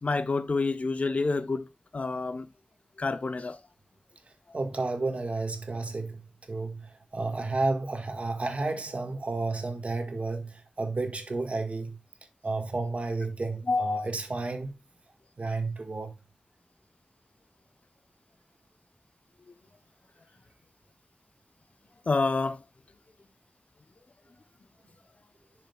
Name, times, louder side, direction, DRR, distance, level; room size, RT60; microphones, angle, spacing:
voice 1, 0.0-1.7 1.9-2.5 3.0-3.6 13.7-14.1 22.1-22.6, left 3 dB, 65° left, 0.9 m, -28 dB
voice 2, 4.5-6.2 6.5-12.0 12.4-14.7 15.4-16.1, right 3 dB, 60° right, 1.7 m, -31 dB
10.0 x 6.6 x 2.4 m
wide cardioid pair, 80°, 2 cm